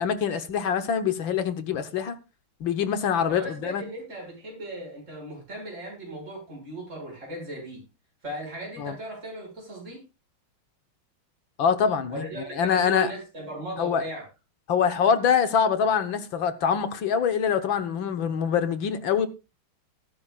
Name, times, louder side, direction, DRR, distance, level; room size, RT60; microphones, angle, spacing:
voice 1, 0.0-2.2 2.6-3.8 8.8-8.9 11.6-12.3 12.6-13.1 13.8-14.0 14.7-19.3, left 7 dB, 70° left, 1.8 m, -24 dB
voice 2, 3.3-7.8 8.2-10.0 12.1-14.3, right 1 dB, 35° right, 6.6 m, -37 dB
19.5 x 10.5 x 2.4 m
omnidirectional pair, 2.3 m